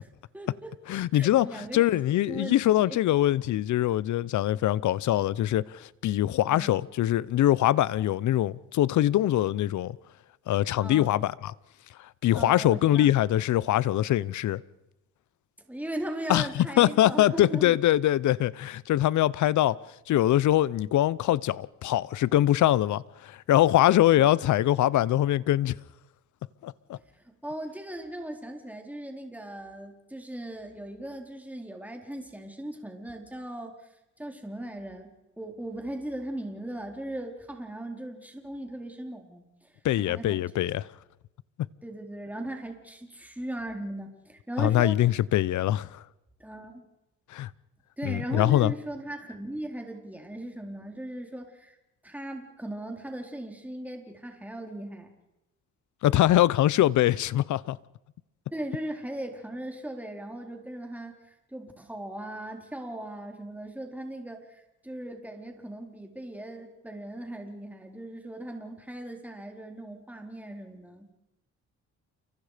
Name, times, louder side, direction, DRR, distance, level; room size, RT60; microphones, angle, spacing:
voice 1, 0.3-0.7 1.1-1.9 2.3-3.0 6.5-6.8 10.8-11.2 12.3-13.2 15.7-17.7 27.1-33.7 34.2-35.1 35.4-40.4 41.8-45.0 46.4-46.8 48.0-51.8 52.0-55.1 58.5-61.2 61.5-71.1, right 1 dB, 5° right, 4.3 m, -38 dB
voice 2, 0.9-10.0 10.5-11.5 12.0-14.6 16.3-19.8 20.1-25.8 26.6-27.0 39.8-40.8 44.6-46.0 47.3-47.5 48.0-48.7 56.0-57.8, left 13 dB, 70° left, 0.8 m, -23 dB
29.5 x 24.5 x 5.2 m
cardioid pair, 90°, 30 cm